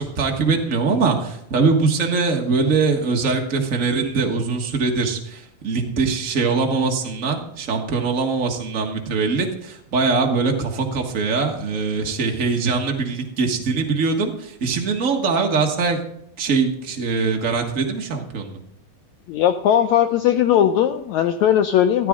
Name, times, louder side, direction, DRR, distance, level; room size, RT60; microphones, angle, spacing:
voice 1, 0.0-16.0 16.4-18.6, right 4 dB, 75° right, 1 dB, 0.7 m, -22 dB
voice 2, 19.3-22.1, left 10 dB, 90° left, 8 dB, 1.6 m, -18 dB
15.0 x 13.5 x 3.7 m, 0.74 s
omnidirectional pair, 4.1 m